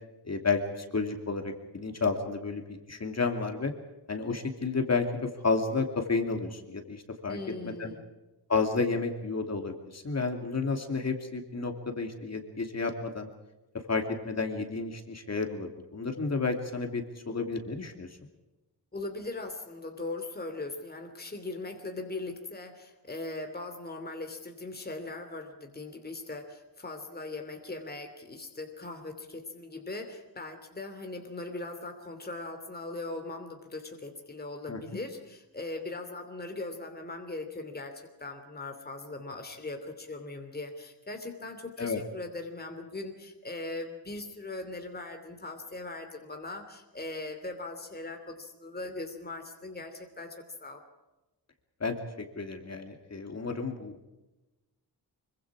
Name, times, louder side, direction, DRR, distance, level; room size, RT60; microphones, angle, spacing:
voice 1, 0.3-3.7 4.1-7.4 7.6-7.9 8.5-13.3 13.9-18.1 34.7-34.8 41.8-42.0 51.8-52.0 52.4-54.1, left 4 dB, 40° left, 4 dB, 2.7 m, -31 dB
voice 2, 7.3-8.0 18.9-50.8, left 2 dB, 20° left, 5 dB, 2.9 m, -40 dB
25.5 x 24.0 x 4.8 m, 1.0 s
wide cardioid pair, 155°, 42 cm